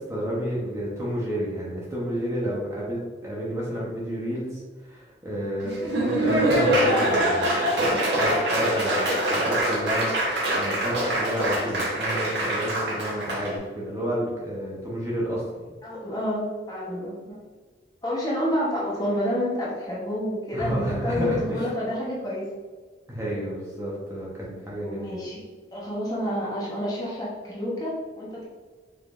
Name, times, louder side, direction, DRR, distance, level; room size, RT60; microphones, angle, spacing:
voice 1, 0.1-4.6 4.9-15.6 20.5-21.7 23.1-25.2, equal, 15° right, -6 dB, 1.0 m, -30 dB
Laughter / Applause, 5.6-13.5, right 1 dB, 70° right, 1.3 m, -24 dB
voice 2, 15.8-17.4 18.0-22.5 24.8-25.4 25.7-28.4, equal, 20° left, -6 dB, 1.1 m, -29 dB
5.3 x 3.9 x 2.6 m, 1.5 s
head